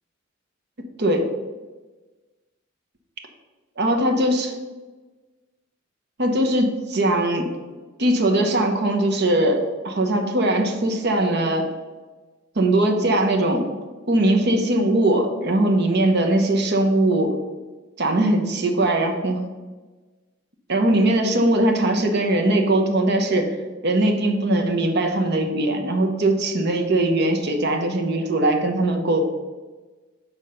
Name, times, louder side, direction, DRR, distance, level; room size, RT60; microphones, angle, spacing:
voice 1, 1.0-1.3 3.8-4.6 6.2-7.6 8.0-11.7 12.5-13.7 14.1-17.3 18.0-19.4 20.7-23.6 23.8-29.2, right 1 dB, 60° right, 4 dB, 1.0 m, -20 dB
6.8 x 4.4 x 5.4 m, 1.3 s
head